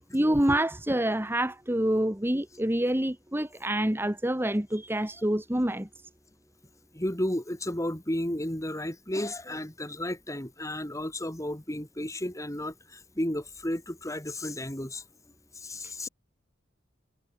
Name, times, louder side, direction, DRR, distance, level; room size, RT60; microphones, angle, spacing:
voice 1, 0.1-5.9 15.8-16.1, right 1 dB, 10° right, 1.5 m, -27 dB
voice 2, 6.9-15.0 15.5-16.1, left 1 dB, 15° left, 3.4 m, -33 dB
head